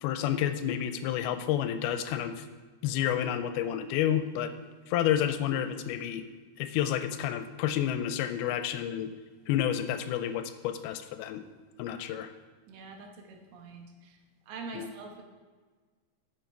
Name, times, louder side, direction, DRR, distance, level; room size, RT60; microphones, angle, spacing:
voice 1, 0.0-2.4 2.8-4.5 4.9-6.3 6.6-9.1 9.5-11.5 11.8-12.3 14.8-14.9, left 10 dB, 85° left, 10 dB, 2.4 m, -30 dB
voice 2, 12.7-14.2 14.5-15.2, right 3 dB, 80° right, 3 dB, 3.1 m, -44 dB
9.3 x 6.8 x 4.6 m, 1.4 s
omnidirectional pair, 4.5 m